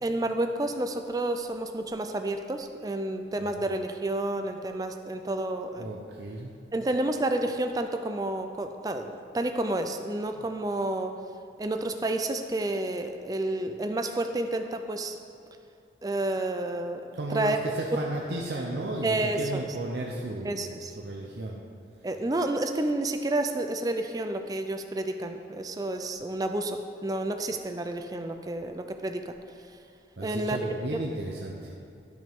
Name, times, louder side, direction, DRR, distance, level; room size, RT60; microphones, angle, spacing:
voice 1, 0.0-6.0 6.7-11.2 11.6-15.2 16.0-17.6 19.0-19.6 20.4-21.0 22.0-29.4 30.2-31.0, right 2 dB, 20° right, 6 dB, 0.4 m, -30 dB
voice 2, 5.8-6.5 10.3-10.4 17.1-20.7 21.0-21.6 30.2-31.7, right 1 dB, 70° right, -2 dB, 0.7 m, -34 dB
12.5 x 6.0 x 3.6 m, 2.6 s
head